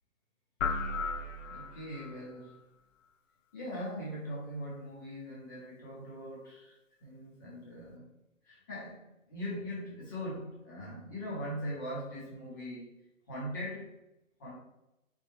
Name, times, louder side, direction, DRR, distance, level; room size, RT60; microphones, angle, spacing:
sound 1, 0.6-2.2, left 4 dB, 65° left, 0.6 m, -35 dB
voice 1, 1.5-2.5 3.5-8.0 8.4-12.9 13.3-14.0 14.4-14.6, equal, 15° left, -6 dB, 0.8 m, -41 dB
3.8 x 3.3 x 3.5 m, 0.91 s
hypercardioid pair, 165°, 41 cm